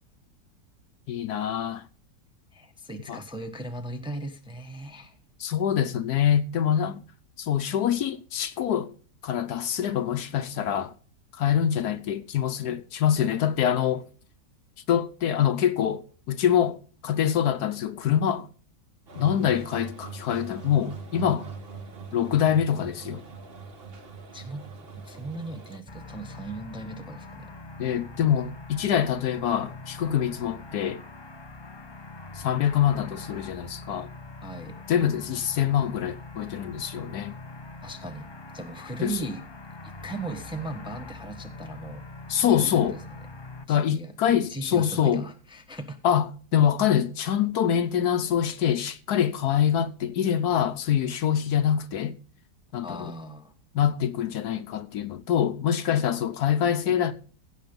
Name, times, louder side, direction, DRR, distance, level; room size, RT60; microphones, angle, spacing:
voice 1, 1.1-1.8 3.1-3.2 5.4-7.0 7.4-8.9 9.2-10.9 11.4-14.0 14.9-16.8 17.0-18.5 19.2-21.4 22.1-23.2 27.8-31.0 32.4-34.1 34.9-37.3 39.0-39.1 42.3-43.0 43.7-45.2 46.0-52.2 52.7-53.1 53.7-57.1, left 9 dB, 70° left, 1.3 m, -25 dB
voice 2, 2.5-5.2 24.3-24.6 25.0-27.5 34.4-34.8 37.8-38.3 38.5-39.4 39.8-42.1 42.4-43.0 43.7-46.0 52.8-53.5, right 2 dB, 5° right, 0.9 m, -38 dB
sound 1, 19.1-25.8, right 5 dB, 40° right, 1.3 m, -42 dB
sound 2, 25.9-43.6, left 2 dB, 40° left, 0.3 m, -43 dB
16.0 x 6.6 x 5.3 m
omnidirectional pair, 1.8 m